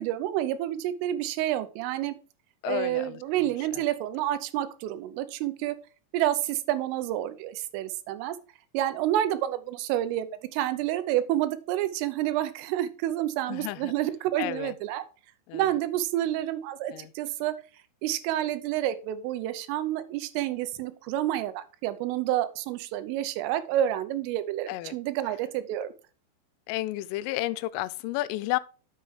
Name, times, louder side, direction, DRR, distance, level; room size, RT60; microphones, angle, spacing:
voice 1, 0.0-2.1 2.6-5.8 6.1-8.4 8.7-15.0 15.5-17.5 18.0-25.9, right 13 dB, 85° right, 3.4 m, -29 dB
voice 2, 2.6-3.8 13.5-13.9 14.4-14.8 15.5-15.7 16.9-17.1 24.7-25.0 26.7-28.6, left 16 dB, 90° left, 3.2 m, -32 dB
10.0 x 7.5 x 3.3 m
omnidirectional pair, 5.7 m